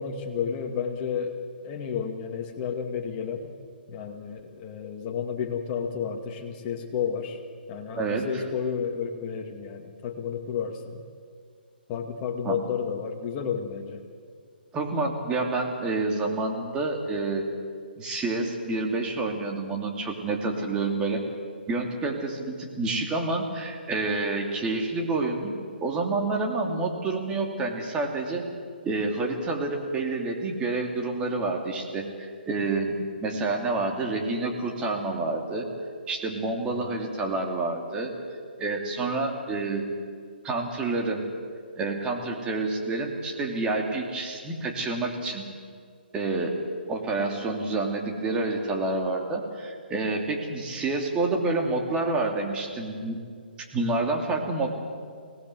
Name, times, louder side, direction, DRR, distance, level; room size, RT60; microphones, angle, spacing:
voice 1, 0.0-3.5 3.9-7.4 7.7-11.0 11.9-14.0 36.6-37.0, left 7 dB, 30° left, 3 dB, 2.5 m, -32 dB
voice 2, 8.0-8.4 12.4-12.6 14.7-17.4 18.0-21.2 21.7-25.5 25.8-28.4 28.8-35.7 36.1-38.1 38.6-39.8 40.4-41.2 41.8-45.5 46.1-46.6 46.9-53.2 53.7-54.8, right 3 dB, 15° right, 1 dB, 2.9 m, -28 dB
23.5 x 18.5 x 8.0 m, 2.1 s
hypercardioid pair, 140°, 6 cm